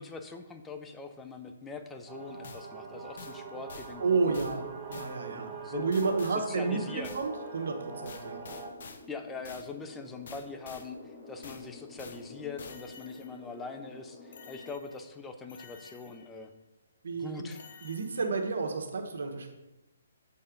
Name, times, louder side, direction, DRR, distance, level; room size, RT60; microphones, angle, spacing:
voice 1, 0.0-4.4 5.3-5.9 6.3-7.2 9.1-16.5 17.2-17.6, left 4 dB, 10° left, 5 dB, 0.5 m, -42 dB
sound 1, 2.1-8.7, right 5 dB, 20° right, 1.0 m, -43 dB
sound 2, 2.4-2.7 3.2-3.4 3.7-3.9 4.3-4.6 4.9-5.2 5.9-6.4 7.0-7.3 8.1-9.0 9.4-9.7 10.3-10.9 11.4-11.7 12.0-12.2 12.6-13.5 14.3-15.1 15.5-16.5 17.5-18.5, left 5 dB, 55° left, 0.7 m, -49 dB
voice 2, 4.0-8.4 17.0-17.5 17.8-19.5, right 4 dB, 70° right, 4 dB, 1.2 m, -31 dB
sound 3, 8.4-14.7, left 3 dB, 35° left, 2.2 m, -50 dB
6.9 x 4.3 x 5.1 m, 1.0 s
hypercardioid pair, 155°, 0 cm